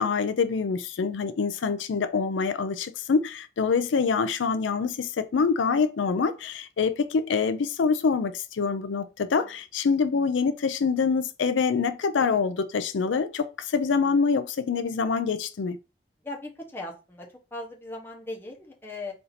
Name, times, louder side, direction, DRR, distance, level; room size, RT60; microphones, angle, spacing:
voice 1, 0.0-15.8, left 5 dB, 85° left, 0.4 m, -25 dB
voice 2, 16.2-17.3 17.5-19.1, left 2 dB, 10° left, 0.9 m, -38 dB
4.4 x 2.7 x 4.0 m
head